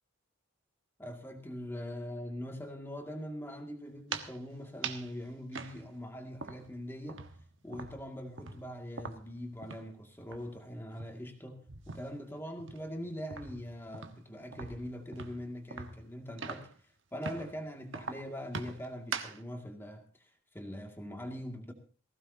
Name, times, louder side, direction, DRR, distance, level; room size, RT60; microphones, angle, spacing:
voice 1, 1.0-7.2 7.6-16.7 17.1-21.7, equal, 10° left, 3 dB, 2.1 m, -42 dB
Footsteps on a wooden floor, 3.9-4.4 4.8-5.1 5.5-6.8 7.1-9.9 10.2-10.4 10.8-12.2 12.6-16.8 17.2-17.5 17.9-19.4, right 5 dB, 60° right, 1.3 m, -42 dB
19.0 x 16.0 x 2.8 m, 0.38 s
head